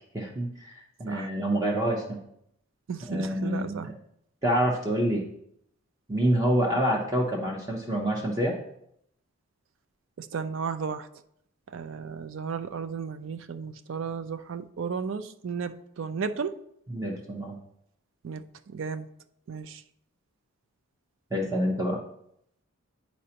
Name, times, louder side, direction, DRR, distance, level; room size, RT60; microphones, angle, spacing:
voice 1, 0.1-0.7 1.0-2.2 3.1-3.9 4.4-5.2 6.1-8.6 16.9-17.6 21.3-22.0, equal, 15° right, -2 dB, 0.7 m, -27 dB
voice 2, 2.9-3.9 10.2-11.1 11.7-16.5 18.2-19.1 19.5-19.8, right 6 dB, 55° right, 11 dB, 0.4 m, -34 dB
9.9 x 4.2 x 2.8 m, 0.74 s
head